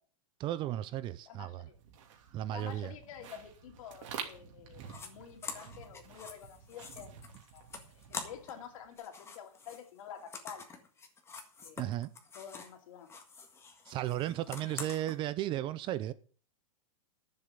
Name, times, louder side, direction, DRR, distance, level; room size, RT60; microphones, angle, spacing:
voice 1, 0.4-1.7 2.3-2.9 4.8-4.9 11.8-12.1 13.9-16.1, right 13 dB, 25° right, 0.5 m, -35 dB
voice 2, 1.3-1.8 2.5-7.2 7.5-7.6 8.1-10.7 11.6-11.9 12.3-13.1 14.6-14.8, left 8 dB, 65° left, 2.7 m, -49 dB
sound 1, 1.7-9.0, right 7 dB, 55° right, 2.8 m, -49 dB
sound 2, 4.9-5.1 5.4-8.7 8.9-12.8 13.1-15.2, left 4 dB, 15° left, 1.7 m, -46 dB
11.0 x 7.6 x 6.9 m
supercardioid pair, 145°, 19 cm